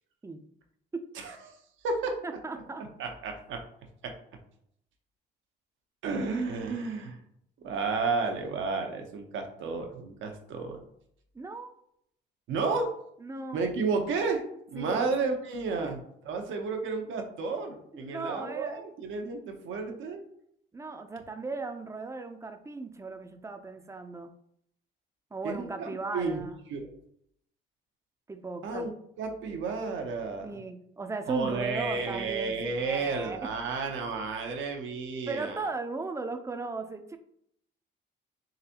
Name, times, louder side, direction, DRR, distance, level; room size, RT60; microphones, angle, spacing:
voice 1, 1.1-1.6 1.8-2.2 2.8-3.6 4.0-4.1 6.0-7.2 7.6-10.8 12.5-12.9 13.5-14.4 14.7-16.0 16.2-20.2 25.4-26.4 26.7-26.9 28.6-28.9 29.2-30.5 31.3-35.7, right 4 dB, 80° right, 4 dB, 0.8 m, -32 dB
voice 2, 2.2-2.8 11.3-11.7 13.2-13.6 14.8-15.0 15.8-15.9 18.1-18.8 20.7-24.3 25.3-26.5 28.3-28.9 30.4-33.5 35.3-37.2, right 3 dB, 15° right, 7 dB, 0.5 m, -37 dB
3.9 x 3.3 x 2.8 m, 0.71 s
cardioid pair, 90°, 20 cm